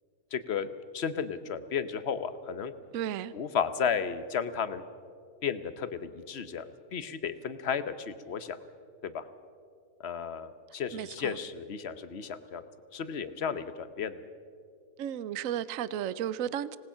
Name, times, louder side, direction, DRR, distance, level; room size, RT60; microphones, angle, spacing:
voice 1, 0.3-0.7 0.9-2.7 3.3-4.8 5.4-8.6 9.0-9.2 10.0-12.6 12.9-14.2, left 7 dB, 50° left, 1.1 m, -33 dB
voice 2, 2.9-3.3 10.9-11.4 15.0-16.8, right 10 dB, 65° right, 1.0 m, -34 dB
26.5 x 19.0 x 5.7 m
omnidirectional pair, 1.6 m